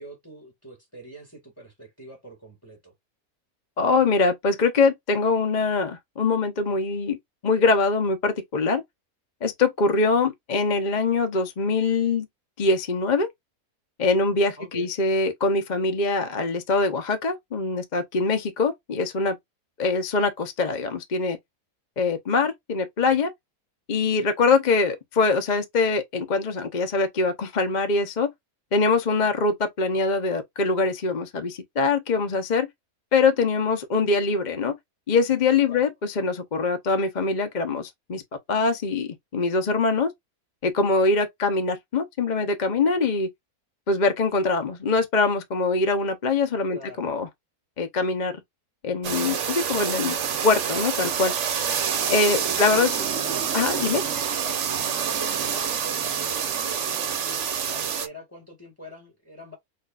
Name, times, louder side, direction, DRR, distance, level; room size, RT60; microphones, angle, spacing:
voice 1, 0.0-2.9 14.6-14.9 35.7-35.9 46.7-47.1 52.5-53.4 53.7-59.6, equal, 10° left, 1.7 m, -44 dB
voice 2, 3.8-7.2 7.4-8.8 9.4-12.3 12.6-13.3 14.0-19.4 19.8-21.4 22.0-23.3 23.9-28.3 28.7-32.7 33.1-34.8 35.1-38.2 38.5-40.1 40.6-43.3 43.9-47.3 47.8-48.3 48.8-50.2 50.4-51.3 52.1-52.9 53.5-54.0, left 3 dB, 40° left, 0.7 m, -23 dB
sound 1, 49.0-58.1, right 7 dB, 55° right, 1.0 m, -27 dB
6.5 x 2.5 x 2.4 m
omnidirectional pair, 1.6 m